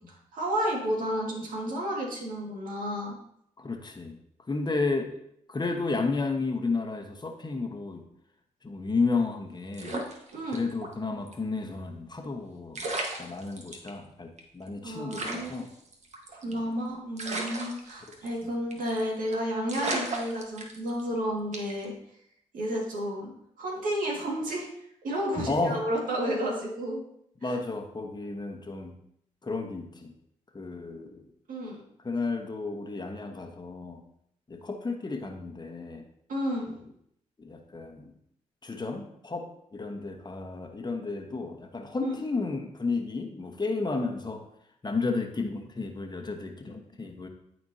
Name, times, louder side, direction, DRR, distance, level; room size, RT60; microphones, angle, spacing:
voice 1, 0.1-3.1 10.3-10.6 14.8-15.7 16.3-21.9 22.5-23.3 23.6-24.7 25.0-27.0 27.4-27.6 31.5-31.8 36.3-36.7 42.0-42.1, equal, 70° right, -2 dB, 2.1 m, -31 dB
voice 2, 3.6-4.2 4.5-5.2 5.5-8.0 8.6-10.0 10.5-12.9 13.2-15.7 16.5-16.6 18.1-18.2 25.5-25.8 27.4-28.9 29.4-30.1 30.5-31.2 32.0-34.0 34.5-36.1 36.7-36.8 37.4-38.1 38.6-44.4 44.8-47.3, left 3 dB, 30° left, 4 dB, 1.2 m, -32 dB
sound 1, 9.7-10.9 11.3-11.4 12.4-12.5 12.7-13.9 14.4-14.5 14.7-14.8 15.1-16.7 17.2-18.4 18.7-19.0 19.3-19.4 19.7-21.1 21.5-21.8, right 2 dB, 50° right, 1.5 m, -35 dB
13.0 x 4.3 x 2.8 m, 0.73 s
supercardioid pair, 45°, 14 cm